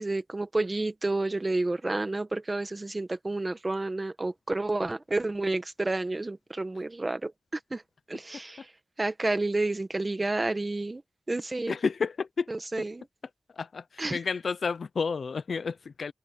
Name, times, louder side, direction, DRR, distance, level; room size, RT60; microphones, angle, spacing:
voice 1, 0.0-7.3 7.7-7.8 8.1-8.7 9.0-11.0 11.3-11.8 12.5-13.0 14.0-14.2, right 2 dB, 25° right, 1.6 m, -30 dB
voice 2, 11.7-12.5 13.5-16.1, left 5 dB, 70° left, 0.7 m, -31 dB
wide cardioid pair, 120°, 0 cm